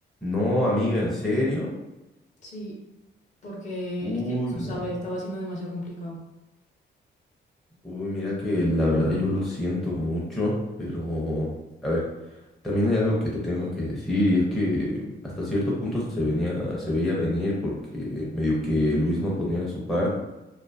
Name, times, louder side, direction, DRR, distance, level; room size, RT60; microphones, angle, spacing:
voice 1, 0.2-1.7 4.0-4.9 7.8-11.5 11.8-12.0 12.6-15.0 15.4-20.1, left 1 dB, ahead, -6 dB, 0.5 m, -26 dB
voice 2, 2.4-2.8 3.4-4.2 4.5-6.2, equal, 40° left, -3 dB, 0.7 m, -34 dB
2.5 x 2.3 x 2.5 m, 0.99 s
wide cardioid pair, 160°, 19 cm